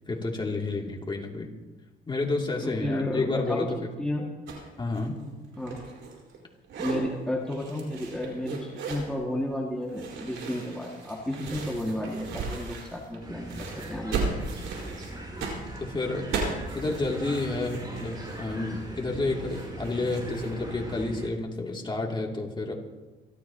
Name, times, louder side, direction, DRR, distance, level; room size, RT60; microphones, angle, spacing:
voice 1, 0.1-1.5 2.1-3.8 4.8-5.2 15.8-22.7, left 2 dB, 25° left, -1 dB, 2.8 m, -30 dB
voice 2, 2.6-3.7 4.0-4.3 5.6-5.8 6.8-14.3, left 1 dB, 5° left, -3 dB, 2.2 m, -32 dB
sound 1, 4.5-4.7 4.9-6.4 6.6-7.0 7.5-9.1 9.9-13.2 13.5-20.5, right 4 dB, 80° right, 4.9 m, -36 dB
sound 2, 13.2-21.3, right 1 dB, 20° right, 5.0 m, -40 dB
27.5 x 13.5 x 3.0 m, 1.2 s
cardioid pair, 90°, 20 cm